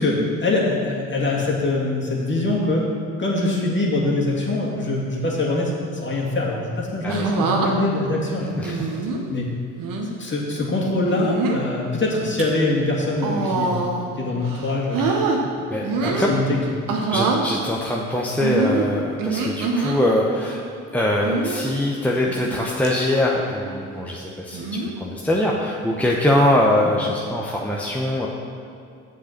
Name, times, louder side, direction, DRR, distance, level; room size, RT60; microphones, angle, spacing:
voice 1, 0.0-2.9 3.2-8.9 9.3-9.5 10.0-15.2 15.9-16.6 17.1-17.2, left 2 dB, 30° left, -3 dB, 2.5 m, -23 dB
sound 1, 7.1-7.7 8.6-9.2 9.8-10.1 11.1-11.6 12.2-12.4 13.2-14.1 14.4-15.4 15.8-16.3 16.9-17.4 18.4-20.0 21.2-21.6 22.2-22.6 22.8-22.9 24.5-24.9 26.0-26.3, right 4 dB, 55° right, 1.3 m, -24 dB
voice 2, 8.5-8.9 15.0-15.1 15.4-16.4 17.1-20.6 20.9-24.7 25.0-28.3, left 1 dB, 5° left, -3 dB, 1.0 m, -22 dB
7.5 x 6.8 x 6.0 m, 2.5 s
hypercardioid pair, 60°, 38 cm